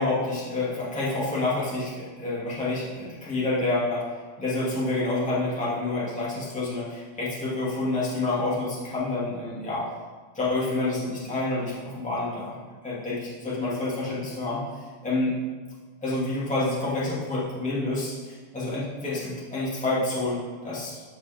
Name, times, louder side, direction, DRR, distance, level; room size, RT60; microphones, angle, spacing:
voice 1, 0.0-4.0 4.4-9.8 10.3-12.6 12.8-14.6 15.0-15.3 16.0-21.0, left 2 dB, 5° left, -8 dB, 2.0 m, -28 dB
15.0 x 5.3 x 3.7 m, 1.4 s
omnidirectional pair, 3.7 m